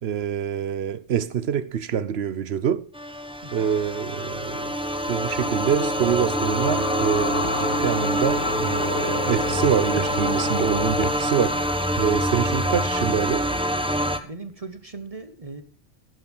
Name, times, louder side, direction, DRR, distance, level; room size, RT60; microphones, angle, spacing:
voice 1, 0.0-2.8 3.5-4.7 5.1-13.4, right 8 dB, 65° right, 1.1 m, -26 dB
sound 1, 2.9-14.2, equal, 5° right, 1.0 m, -25 dB
sound 2, 4.8-13.1, equal, 25° left, 1.4 m, -43 dB
sound 3, 5.1-12.6, left 4 dB, 90° left, 2.0 m, -33 dB
voice 2, 14.2-15.6, right 3 dB, 35° right, 1.1 m, -38 dB
12.0 x 9.6 x 6.1 m
omnidirectional pair, 1.2 m